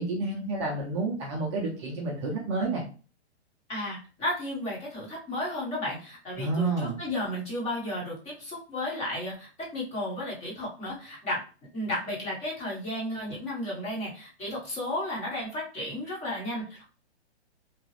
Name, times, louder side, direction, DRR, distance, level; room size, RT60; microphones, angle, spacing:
voice 1, 0.0-2.8 6.4-7.0, right 3 dB, 25° right, -2 dB, 0.5 m, -29 dB
voice 2, 3.7-11.4 11.7-16.9, left 1 dB, 20° left, -4 dB, 1.1 m, -33 dB
2.9 x 2.3 x 3.1 m, 0.37 s
hypercardioid pair, 145°, 34 cm